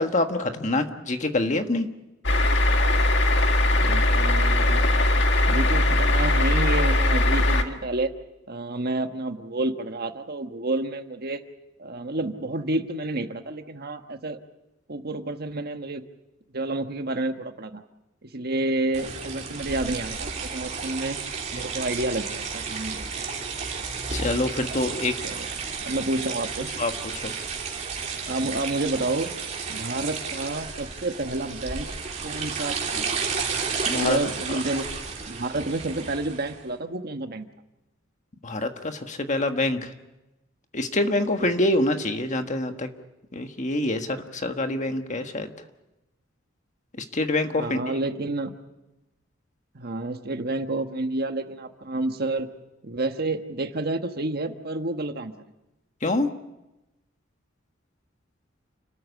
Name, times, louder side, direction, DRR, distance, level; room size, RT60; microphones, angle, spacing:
voice 1, 0.0-1.9 24.1-25.1 26.8-26.9 27.2-27.3 33.9-34.2 38.4-39.9 40.7-42.9 43.3-45.5 47.0-47.8 56.0-56.3, left 2 dB, 40° left, 6 dB, 1.5 m, -25 dB
sound 1, 2.2-7.6, left 1 dB, 65° left, 1.8 m, -20 dB
voice 2, 3.8-5.2 5.5-8.1 8.5-11.4 11.8-14.4 14.9-16.0 16.5-17.8 18.2-21.2 21.5-23.1 25.2-25.5 25.8-26.7 28.2-29.3 29.7-31.9 32.2-33.1 33.9-34.8 35.3-37.4 41.4-41.5 47.5-48.5 49.7-52.5 52.8-55.3, right 2 dB, 50° right, 7 dB, 1.3 m, -29 dB
sound 2, 18.9-36.6, right 5 dB, 35° right, 3.4 m, -32 dB
29.5 x 13.5 x 8.3 m, 0.97 s
head